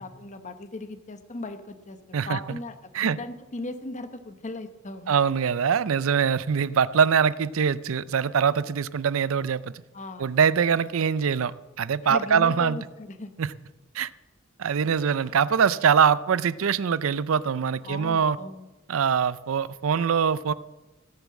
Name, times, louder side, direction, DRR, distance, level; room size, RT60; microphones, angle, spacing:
voice 1, 0.0-2.8 3.0-5.1 9.9-10.3 12.0-13.3 17.8-18.6, left 2 dB, 35° left, 9 dB, 1.0 m, -37 dB
voice 2, 2.1-2.6 2.9-3.2 5.1-9.7 10.2-11.5 11.8-12.8 13.4-13.5 13.9-14.1 14.6-18.4 18.9-20.5, right 7 dB, 80° right, 17 dB, 0.5 m, -23 dB
16.5 x 7.1 x 7.4 m, 1.1 s
head